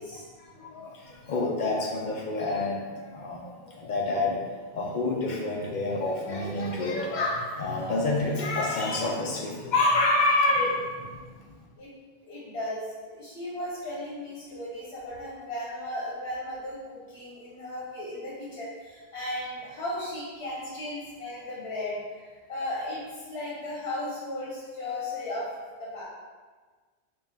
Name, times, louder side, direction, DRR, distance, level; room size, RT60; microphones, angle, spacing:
voice 1, 0.4-4.5 4.7-11.6, left 2 dB, 55° left, -1 dB, 0.6 m, -28 dB
voice 2, 12.2-25.5 25.8-26.0, left 1 dB, 80° left, -6 dB, 1.0 m, -36 dB
3.9 x 2.3 x 3.6 m, 1.4 s
omnidirectional pair, 1.1 m